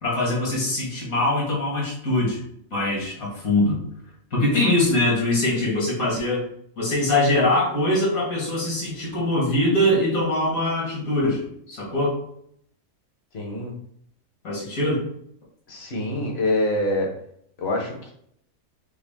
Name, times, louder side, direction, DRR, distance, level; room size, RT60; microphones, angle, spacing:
voice 1, 0.0-2.4 2.7-3.8 4.3-6.4 6.8-12.2 14.4-15.1, left 1 dB, 65° left, -4 dB, 2.1 m, -22 dB
voice 2, 13.3-13.7 15.7-17.1 17.6-18.1, left 1 dB, 45° left, 0 dB, 1.3 m, -25 dB
6.0 x 2.4 x 3.5 m, 0.67 s
omnidirectional pair, 1.6 m